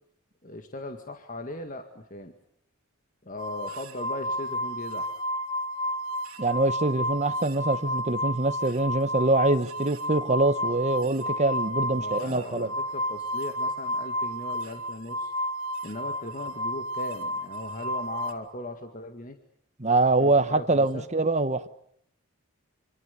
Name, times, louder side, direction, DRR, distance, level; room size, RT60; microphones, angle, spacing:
voice 1, 0.4-2.3 3.2-5.1 12.0-15.3 15.8-19.4 20.2-21.1, left 2 dB, 40° left, 2.0 m, -38 dB
sound 1, 3.4-18.3, equal, 85° right, 3.0 m, -31 dB
voice 2, 6.4-12.7 19.8-21.7, right 2 dB, 30° right, 1.2 m, -24 dB
26.0 x 25.5 x 6.9 m
head